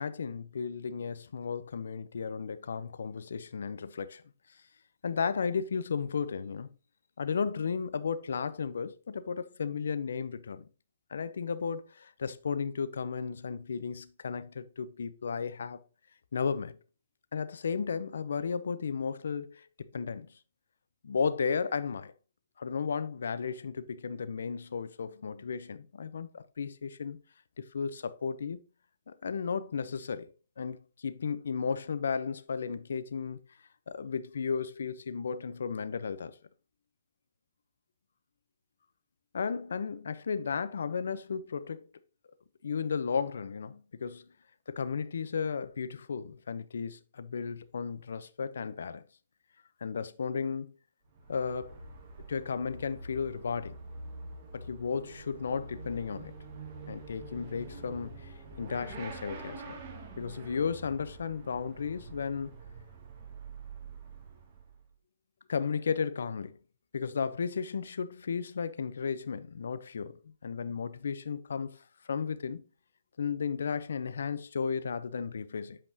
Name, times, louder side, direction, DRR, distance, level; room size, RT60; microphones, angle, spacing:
voice 1, 0.0-4.2 5.0-6.7 7.2-10.7 11.1-15.8 16.3-16.8 17.3-20.3 21.0-22.1 22.6-27.2 27.6-28.6 29.1-30.3 30.6-33.4 33.9-36.3 39.3-41.8 42.6-44.3 44.7-49.0 49.8-50.7 51.3-51.8 52.3-53.8 54.5-56.3 56.9-59.8 60.2-62.5 65.5-66.6 66.9-71.7 72.0-72.6 73.2-75.8, left 6 dB, 80° left, 0.7 m, -34 dB
Motorcycle / Accelerating revving vroom, 51.0-64.9, right 3 dB, 45° right, 2.3 m, -46 dB
8.5 x 5.3 x 2.8 m
hypercardioid pair, 145°, 0 cm